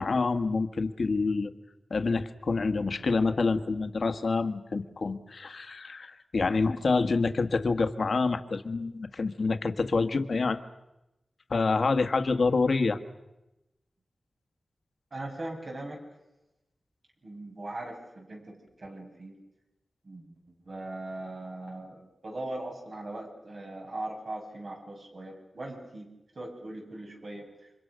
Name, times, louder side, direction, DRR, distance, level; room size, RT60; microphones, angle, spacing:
voice 1, 0.0-1.5 1.9-10.6 11.5-13.0, left 4 dB, 65° left, 8 dB, 1.6 m, -27 dB
voice 2, 15.1-16.0 17.2-19.4 20.0-26.1 26.4-27.5, right 2 dB, 55° right, 1 dB, 7.4 m, -40 dB
29.5 x 26.0 x 6.5 m, 0.94 s
wide cardioid pair, 115°, 0 cm